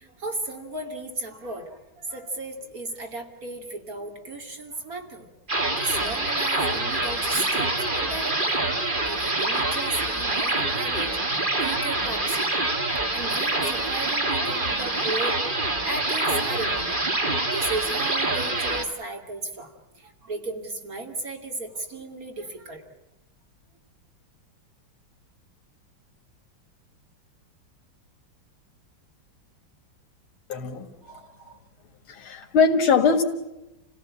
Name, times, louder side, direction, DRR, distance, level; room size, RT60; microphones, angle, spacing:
voice 1, 0.0-5.3 5.8-15.4 15.8-22.8, right 2 dB, 45° right, 3 dB, 3.1 m, -35 dB
sound 1, 5.5-18.8, right 2 dB, 25° right, 2.0 m, -26 dB
voice 2, 30.5-31.6 32.1-33.2, left 5 dB, 85° left, 4 dB, 2.6 m, -22 dB
29.0 x 17.0 x 8.8 m, 0.98 s
omnidirectional pair, 2.2 m